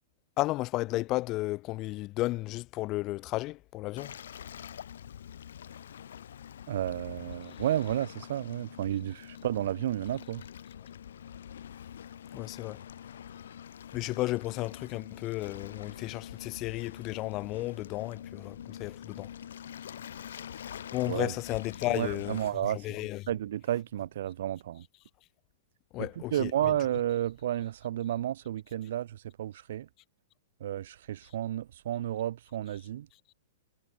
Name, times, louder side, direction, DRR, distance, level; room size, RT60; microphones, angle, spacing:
voice 1, 0.4-4.1 12.3-12.8 13.9-19.3 20.9-22.4 22.7-23.2 25.9-26.5, left 19 dB, 25° left, 1.0 m, -33 dB
Waves surf, 4.0-22.5, left 9 dB, 80° left, 2.9 m, -45 dB
voice 2, 6.7-10.4 21.1-21.3 21.9-22.9 23.3-24.8 26.0-29.9 30.6-33.1, right 11 dB, 60° right, 1.3 m, -32 dB
hypercardioid pair, 170°, 0 cm